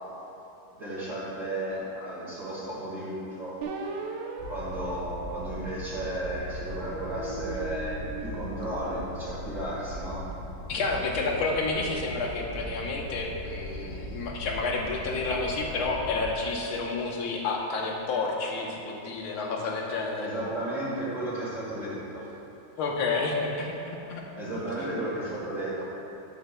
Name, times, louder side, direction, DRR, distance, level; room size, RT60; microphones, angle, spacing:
voice 1, 0.7-3.6 4.5-10.2 20.2-22.3 24.3-25.8, right 1 dB, 35° right, -11 dB, 2.3 m, -34 dB
sound 1, 3.6-6.3 6.9-9.4, right 3 dB, 75° right, 1.5 m, -40 dB
sound 2, 4.4-16.3, equal, 65° left, 2.7 m, -39 dB
voice 2, 10.7-20.3 22.8-24.2 24.8-24.9, left 3 dB, 80° left, 0 dB, 1.9 m, -30 dB
12.0 x 9.6 x 2.2 m, 2.8 s
omnidirectional pair, 2.3 m